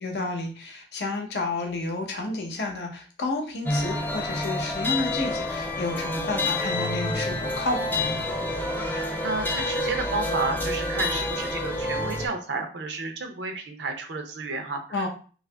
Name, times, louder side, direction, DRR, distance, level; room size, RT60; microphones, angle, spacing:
voice 1, 0.0-8.2 14.9-15.1, left 2 dB, 65° left, 2 dB, 0.7 m, -31 dB
sound 1, 3.7-12.3, left 2 dB, 10° left, 0.4 m, -28 dB
voice 2, 8.9-15.1, right 3 dB, 80° right, 5 dB, 0.6 m, -31 dB
2.9 x 2.4 x 3.3 m, 0.40 s
head